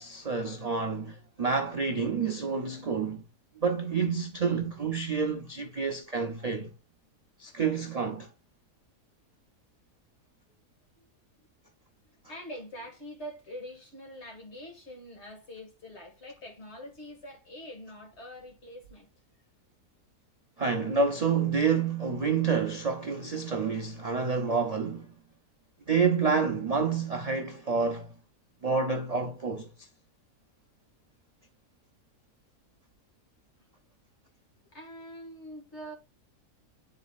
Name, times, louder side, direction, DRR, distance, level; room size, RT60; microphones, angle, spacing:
voice 1, 0.0-3.2 3.6-6.7 7.4-8.3 20.6-25.1 25.9-28.1 28.6-29.7, right 5 dB, 55° right, 0.4 m, -28 dB
voice 2, 12.3-19.1 34.7-35.9, equal, 45° left, 2.1 m, -44 dB
10.5 x 4.1 x 2.4 m
omnidirectional pair, 1.6 m